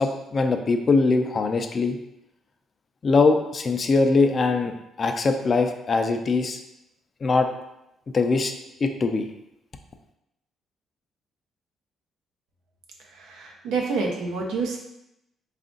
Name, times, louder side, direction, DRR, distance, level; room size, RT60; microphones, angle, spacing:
voice 1, 0.0-2.0 3.0-6.6 7.2-7.5 8.1-8.5 8.8-9.3, left 3 dB, 40° left, 6 dB, 0.4 m, -22 dB
voice 2, 13.2-14.8, right 4 dB, 85° right, 0 dB, 0.7 m, -28 dB
3.5 x 2.5 x 3.8 m, 0.86 s
cardioid pair, 90°, 0 cm